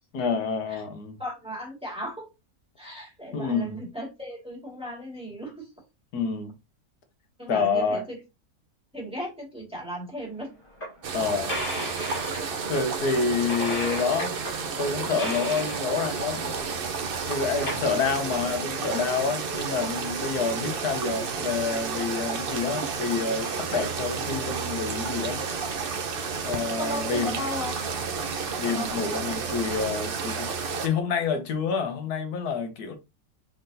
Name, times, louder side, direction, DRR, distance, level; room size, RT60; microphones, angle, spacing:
voice 1, 0.1-1.2 3.3-3.8 6.1-6.5 7.5-8.0 11.1-11.5 12.7-14.4 14.8-16.5 17.3-25.4 26.4-27.4 28.6-33.0, left 5 dB, 85° left, 1.5 m, -28 dB
voice 2, 1.2-2.3 2.8-5.7 7.4-8.2 8.9-10.5 26.8-27.8 28.7-29.1, equal, 5° right, 2.0 m, -36 dB
sound 1, 10.4-10.5 10.8-10.9 11.4-12.7 13.5-14.6 15.0-16.1 16.5-16.6 16.9-17.0 17.3-17.9, left 1 dB, 35° left, 1.9 m, -35 dB
sound 2, 11.0-30.9, right 5 dB, 55° right, 0.7 m, -31 dB
4.4 x 3.8 x 2.7 m
omnidirectional pair, 1.6 m